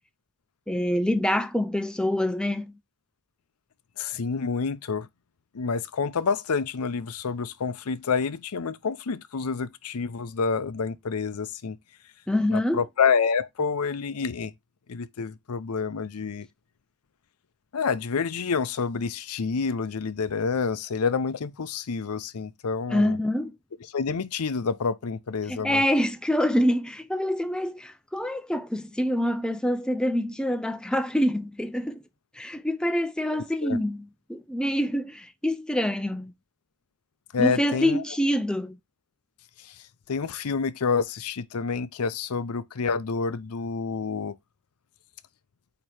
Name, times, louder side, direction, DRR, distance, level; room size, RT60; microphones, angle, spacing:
voice 1, 0.7-2.8 12.3-12.8 22.9-23.5 25.5-32.0 32.3-36.3 37.4-38.8, left 1 dB, 5° left, 0.4 m, -26 dB
voice 2, 4.0-5.1 5.5-11.8 12.5-14.5 14.9-16.5 17.7-23.2 23.9-25.8 33.3-33.8 37.3-38.0 39.6-39.8 40.1-44.4, left 5 dB, 85° left, 0.6 m, -28 dB
8.7 x 3.0 x 4.8 m
head